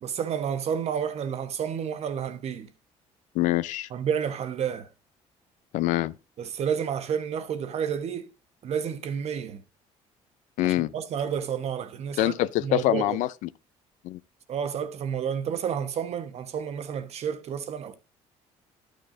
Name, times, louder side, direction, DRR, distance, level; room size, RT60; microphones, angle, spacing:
voice 1, 0.0-2.7 3.9-4.9 6.4-8.3 8.6-9.6 10.6-12.3 12.6-13.2 14.5-17.9, right 8 dB, 55° right, 1.0 m, -30 dB
voice 2, 3.3-3.9 5.7-6.1 10.6-10.9 12.2-13.5 14.0-14.2, left 16 dB, 80° left, 0.4 m, -25 dB
11.5 x 6.4 x 2.7 m
cardioid pair, 95°, 13 cm